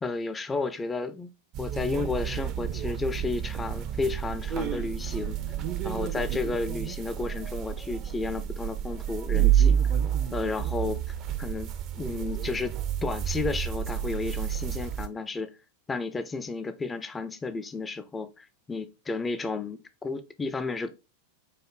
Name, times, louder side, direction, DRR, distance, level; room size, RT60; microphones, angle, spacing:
voice 1, 0.0-1.3 1.6-5.4 5.8-9.8 10.3-11.7 12.0-15.5 15.9-20.9, left 3 dB, 15° left, 0.5 m, -32 dB
sound 1, 1.5-15.1, right 9 dB, 35° right, 0.5 m, -29 dB
4.6 x 2.6 x 3.7 m
figure-of-eight pair, 90°, 0 cm